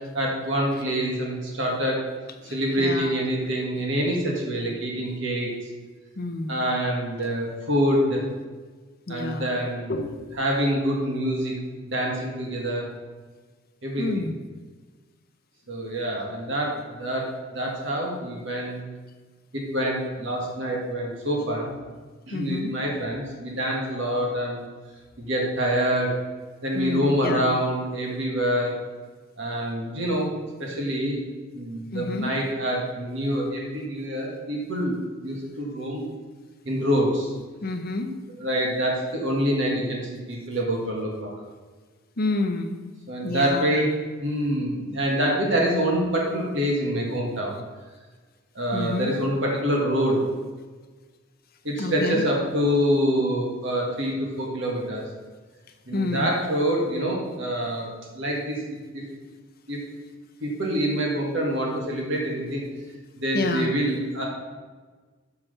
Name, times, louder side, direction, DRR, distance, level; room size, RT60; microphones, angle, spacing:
voice 1, 0.1-2.0 2.5-5.5 6.5-8.2 9.1-9.9 10.4-11.5 11.8-12.9 13.8-14.2 15.7-17.3 17.5-18.8 19.5-21.7 22.3-24.6 25.2-26.2 26.6-28.8 29.4-30.3 30.6-31.2 31.5-35.0 35.2-36.0 36.6-37.3 38.4-40.0 40.3-41.3 43.1-43.9 44.2-47.5 48.5-50.2 51.6-55.0 55.9-58.6 58.9-59.0 59.7-59.8 60.4-62.6 63.2-64.2, equal, 55° right, -1 dB, 1.7 m, -26 dB
voice 2, 2.5-3.1 6.2-6.6 9.1-9.5 9.9-10.3 14.0-14.3 22.3-22.7 26.7-27.5 31.9-32.3 37.6-38.1 42.2-42.8 43.2-43.7 48.7-49.2 51.8-52.2 55.9-56.4 63.3-63.7, left 2 dB, 45° left, 6 dB, 0.8 m, -29 dB
6.0 x 5.9 x 6.6 m, 1.4 s
head